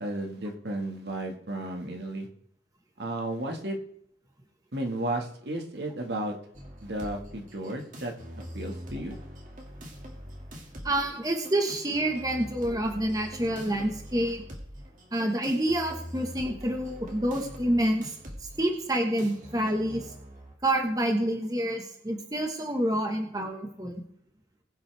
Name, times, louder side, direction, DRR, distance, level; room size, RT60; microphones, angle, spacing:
voice 1, 0.0-2.3 3.0-3.8 4.7-6.4 6.8-9.2, right 1 dB, 70° right, 2 dB, 1.9 m, -33 dB
sound 1, 6.5-20.6, equal, 45° right, 2.3 m, -44 dB
voice 2, 10.8-14.4 15.1-18.1 18.6-20.1 20.6-24.0, right 1 dB, 20° right, 3 dB, 1.5 m, -28 dB
21.0 x 7.7 x 3.5 m, 0.71 s
head